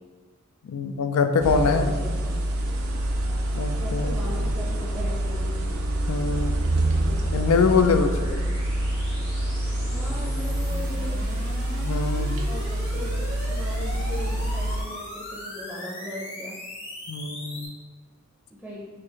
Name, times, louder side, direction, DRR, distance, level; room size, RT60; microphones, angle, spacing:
voice 1, 0.6-1.9 3.5-4.2 6.1-6.6 7.3-8.1 11.8-12.4 17.1-17.7, left 5 dB, 80° left, 7 dB, 0.4 m, -23 dB
sound 1, 1.4-14.8, right 1 dB, 70° right, 0.5 m, -26 dB
voice 2, 1.5-2.4 3.7-5.6 7.0-8.4 9.8-11.3 12.4-16.6 18.5-18.9, left 1 dB, ahead, -6 dB, 0.6 m, -39 dB
sound 2, 5.5-17.7, left 1 dB, 60° left, 1.4 m, -40 dB
4.5 x 2.5 x 3.6 m, 1.3 s
head